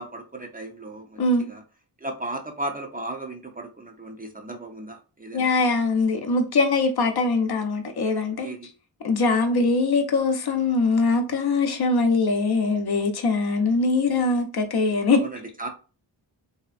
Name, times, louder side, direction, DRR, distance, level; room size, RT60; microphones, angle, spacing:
voice 1, 0.0-1.6 2.0-5.5 8.4-8.7 15.2-15.7, right 2 dB, 20° right, 0.6 m, -35 dB
voice 2, 5.3-8.5 9.0-15.2, left 3 dB, 55° left, 0.6 m, -22 dB
2.7 x 2.3 x 2.4 m
cardioid pair, 50°, 45 cm